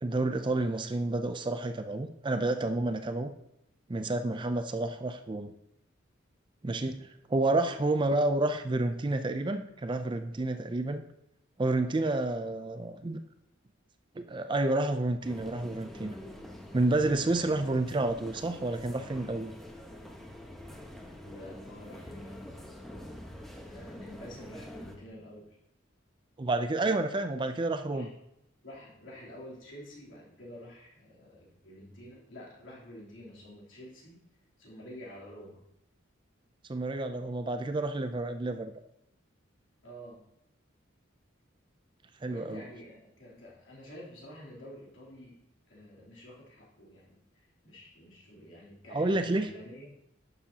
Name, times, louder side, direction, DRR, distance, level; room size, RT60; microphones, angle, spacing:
voice 1, 0.0-3.3 3.9-5.5 6.6-11.0 11.6-13.2 14.2-16.2 16.7-19.5 26.4-28.1 36.7-38.7 42.2-42.6 48.9-49.5, right 2 dB, 25° right, 8 dB, 0.4 m, -30 dB
sound 1, 15.2-25.0, left 1 dB, ahead, 0.9 m, -46 dB
voice 2, 21.2-22.8 23.7-25.6 27.9-28.1 28.6-34.2 34.6-35.6 39.8-40.2 42.3-45.4 45.7-49.9, equal, 70° left, -6 dB, 3.3 m, -49 dB
11.0 x 6.9 x 2.8 m, 0.81 s
head